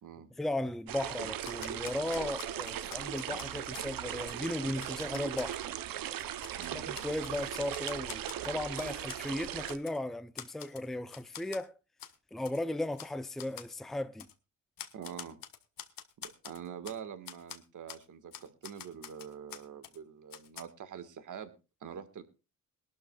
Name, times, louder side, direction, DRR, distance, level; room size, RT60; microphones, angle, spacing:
voice 1, 0.4-5.6 6.7-11.7 12.3-14.3, left 1 dB, ahead, 0.6 m, -36 dB
sound 1, 0.9-9.8, right 11 dB, 90° right, 0.9 m, -38 dB
Typewriter, 1.4-3.9 4.3-4.4 4.8-5.6 6.1-7.4 7.7-9.2 9.7-10.0 10.4-10.9 11.1-11.6 12.0-12.1 12.4-12.6 13.0-13.1 13.4-13.7 14.2-14.3 14.8-17.0 17.2-17.6 17.9-18.0 18.3-20.0 20.3-20.6, left 10 dB, 80° left, 1.4 m, -47 dB
voice 2, 6.6-6.9 14.9-15.4 16.2-21.5 21.8-22.2, right 8 dB, 65° right, 1.7 m, -45 dB
21.5 x 12.5 x 2.3 m
cardioid pair, 110°, 33 cm